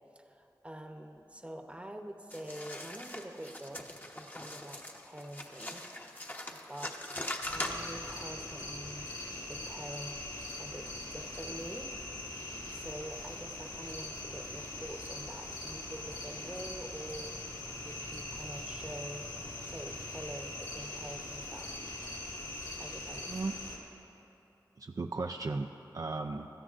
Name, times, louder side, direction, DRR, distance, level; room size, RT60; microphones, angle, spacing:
voice 1, 0.1-3.9 4.1-6.3 6.7-7.0 7.5-9.1 9.5-10.2 10.6-11.9 12.3-17.4 17.8-19.3 19.6-21.7 22.8-23.3, right 1 dB, 15° right, 4 dB, 0.9 m, -46 dB
sound 1, 2.3-8.2, left 1 dB, 25° left, 0.9 m, -41 dB
sound 2, 7.4-23.8, left 2 dB, 65° left, 2.1 m, -42 dB
voice 2, 24.8-26.5, right 3 dB, 55° right, 4 dB, 0.4 m, -36 dB
16.5 x 13.5 x 2.5 m, 3.0 s
cardioid pair, 45°, 7 cm